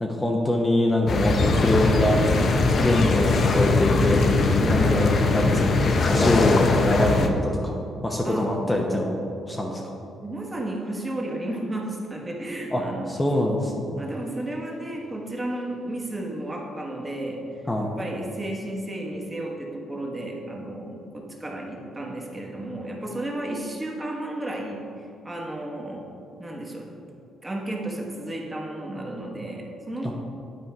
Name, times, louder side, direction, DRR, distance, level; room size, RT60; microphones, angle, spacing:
voice 1, 0.0-2.2 2.8-4.2 4.7-7.7 8.0-9.2 9.5-9.9 12.7-12.8 13.1-14.0 17.7-17.9 30.0-30.1, left 1 dB, 15° left, -1 dB, 0.8 m, -24 dB
sound 1, 1.1-7.3, left 3 dB, 50° left, 0.7 m, -21 dB
voice 2, 4.6-5.1 8.2-8.5 10.2-13.1 13.9-26.1 26.4-26.9 27.4-30.1, right 1 dB, 20° right, -1 dB, 1.4 m, -33 dB
9.7 x 4.5 x 4.5 m, 2.6 s
cardioid pair, 90°, 0 cm